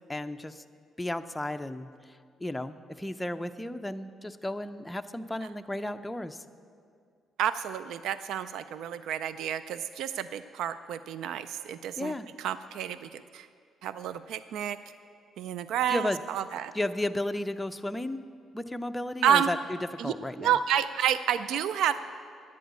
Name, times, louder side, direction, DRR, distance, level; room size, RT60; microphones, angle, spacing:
voice 1, 0.1-0.6 1.0-1.9 2.4-6.4 12.0-12.3 15.9-16.2 16.7-18.2 18.5-20.6, left 1 dB, 10° left, 8 dB, 0.6 m, -33 dB
voice 2, 7.4-12.1 12.4-13.5 13.8-14.8 15.4-16.7 19.2-19.5 20.0-22.0, right 9 dB, 80° right, 13 dB, 0.3 m, -29 dB
11.0 x 9.4 x 8.2 m, 2.2 s
cardioid pair, 90°, 0 cm